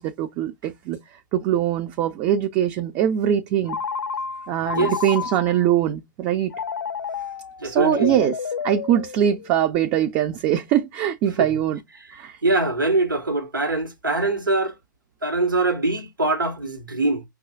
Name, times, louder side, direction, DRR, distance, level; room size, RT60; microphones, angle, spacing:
voice 1, 0.0-3.8 4.5-6.6 7.6-8.4 8.6-11.8 12.1-12.4, right 10 dB, 30° right, 0.4 m, -22 dB
Telephone, 3.7-5.7 6.5-9.6, left 6 dB, 85° left, 0.4 m, -30 dB
voice 2, 7.6-8.2 11.4-11.6 12.4-14.7 15.2-17.2, right 2 dB, 85° right, 1.1 m, -23 dB
5.3 x 2.3 x 2.3 m
figure-of-eight pair, 115°, 11 cm